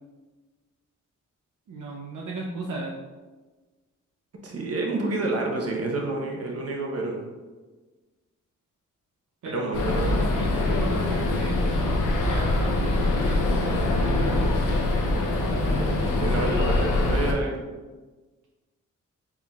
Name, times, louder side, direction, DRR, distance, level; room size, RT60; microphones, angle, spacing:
voice 1, 1.7-2.9 9.4-9.8 10.3-14.6, right 3 dB, 70° right, -2 dB, 0.6 m, -36 dB
voice 2, 4.4-7.2 9.4-10.3 15.5-15.9 16.2-17.5, right 2 dB, 50° right, -1 dB, 1.0 m, -29 dB
sound 1, 9.7-17.3, left 2 dB, 75° left, 0.7 m, -24 dB
4.6 x 3.6 x 2.3 m, 1.3 s
cardioid pair, 70°, 32 cm